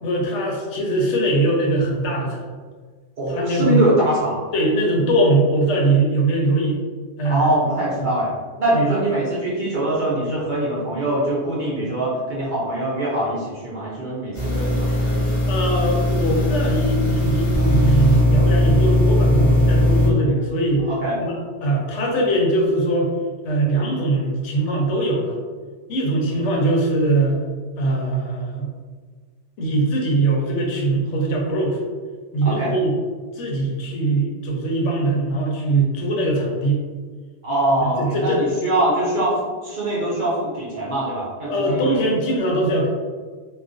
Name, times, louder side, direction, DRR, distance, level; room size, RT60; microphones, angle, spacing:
voice 1, 0.0-2.4 3.3-3.8 4.5-6.8 7.2-7.5 8.0-8.1 8.7-9.0 15.5-20.9 21.2-23.1 23.4-25.4 25.9-27.4 27.8-28.7 29.6-31.8 32.3-32.9 33.4-36.8 37.8-38.5 41.5-42.9, right 2 dB, 80° left, -1 dB, 0.9 m, -21 dB
voice 2, 3.2-4.5 7.2-8.3 8.6-15.6 20.9-21.2 32.4-32.7 37.4-42.0, right 1 dB, 55° right, -7 dB, 0.6 m, -23 dB
sound 1, 14.3-20.1, left 1 dB, 45° left, 0.8 m, -18 dB
2.4 x 2.1 x 2.5 m, 1.5 s
omnidirectional pair, 1.2 m